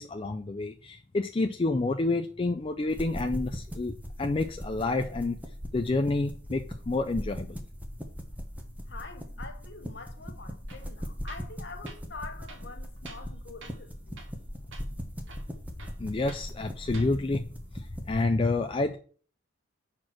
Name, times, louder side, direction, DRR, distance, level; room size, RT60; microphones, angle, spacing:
voice 1, 0.0-5.4 5.7-7.6 16.0-17.4 17.7-19.0, left 2 dB, 25° left, 0.4 m, -29 dB
sound 1, 2.9-18.3, equal, 10° right, 0.8 m, -40 dB
voice 2, 8.9-14.2, left 4 dB, 55° left, 1.1 m, -45 dB
Tools, 10.7-10.9 11.3-11.5 11.9-12.0 12.5-13.3 13.6-13.9 14.2-14.4 14.7-14.9 15.3-16.5 16.9-17.1, right 4 dB, 70° right, 1.0 m, -49 dB
6.3 x 4.4 x 6.0 m
head